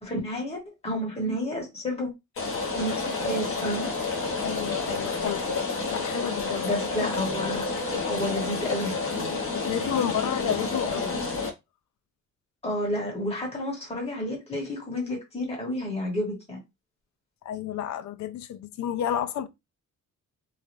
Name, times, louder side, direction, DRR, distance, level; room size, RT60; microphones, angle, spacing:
voice 1, 0.0-2.1 2.7-3.9 6.6-7.7 8.0-9.0 12.6-16.6, left 1 dB, 20° left, 1.2 m, -30 dB
Rain, 2.4-11.5, left 3 dB, 45° left, 1.0 m, -30 dB
voice 2, 4.4-5.5 5.9-6.8 7.0-7.1 9.5-11.2 17.4-19.5, left 10 dB, 65° left, 0.4 m, -31 dB
3.3 x 2.4 x 2.6 m
wide cardioid pair, 165°, 31 cm